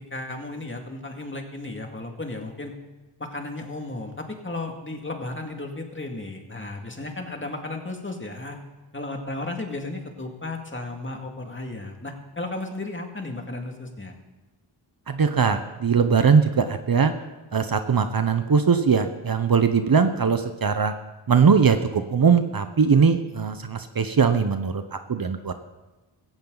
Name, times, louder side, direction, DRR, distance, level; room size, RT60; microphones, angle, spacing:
voice 1, 0.1-2.7 3.2-8.6 8.9-14.2, left 2 dB, 25° left, 3 dB, 2.3 m, -34 dB
voice 2, 15.1-17.1 17.5-20.9 21.3-25.5, right 6 dB, 45° right, 9 dB, 1.0 m, -20 dB
16.0 x 15.0 x 4.0 m, 1.1 s
wide cardioid pair, 70°, 48 cm